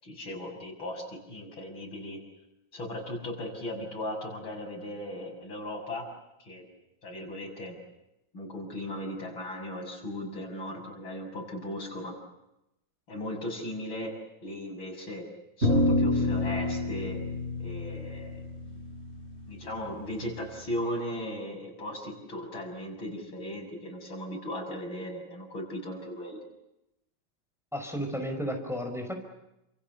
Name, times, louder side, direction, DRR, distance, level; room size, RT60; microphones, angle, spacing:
voice 1, 0.0-2.2 2.7-6.1 6.4-6.6 7.0-7.8 8.3-12.2 13.1-15.3 15.6-17.2 17.6-18.4 19.5-26.4, left 1 dB, 75° left, 2 dB, 7.5 m, -37 dB
sound 1, 15.6-20.1, left 1 dB, 30° right, 7.5 m, -28 dB
voice 2, 27.7-29.2, equal, ahead, 3 dB, 5.3 m, -33 dB
29.5 x 28.0 x 7.0 m, 0.89 s
omnidirectional pair, 2.2 m